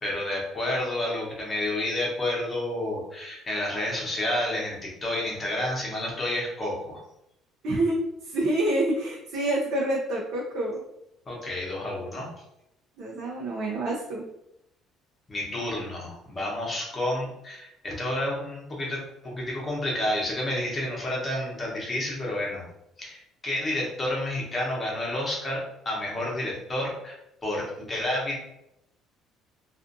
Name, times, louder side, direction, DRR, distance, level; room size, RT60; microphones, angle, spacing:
voice 1, 0.0-7.0 11.3-12.3 15.3-22.6 23.0-27.2 27.4-28.4, left 1 dB, 20° left, -3 dB, 0.9 m, -30 dB
voice 2, 7.6-10.8 13.0-14.2, right 1 dB, 65° right, -4 dB, 0.5 m, -27 dB
2.4 x 2.4 x 2.6 m, 0.83 s
cardioid pair, 135°, 0 cm